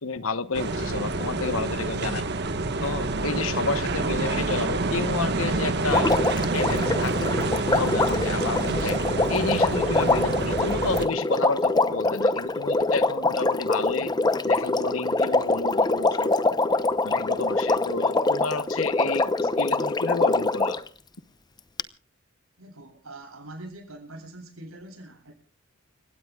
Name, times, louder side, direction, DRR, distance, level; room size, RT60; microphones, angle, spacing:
voice 1, 0.0-2.3 2.8-6.1 6.5-7.1 7.7-9.0 9.3-14.2 14.4-16.4 17.0-20.8, left 4 dB, 75° left, 13 dB, 1.1 m, -31 dB
sound 1, 0.5-11.1, right 2 dB, 55° right, 1.4 m, -27 dB
Water, 5.9-20.9 21.8-21.9, left 2 dB, 20° left, 0.8 m, -24 dB
voice 2, 22.6-25.3, right 1 dB, 85° right, 2 dB, 7.9 m, -43 dB
30.0 x 16.5 x 2.4 m, 0.41 s
head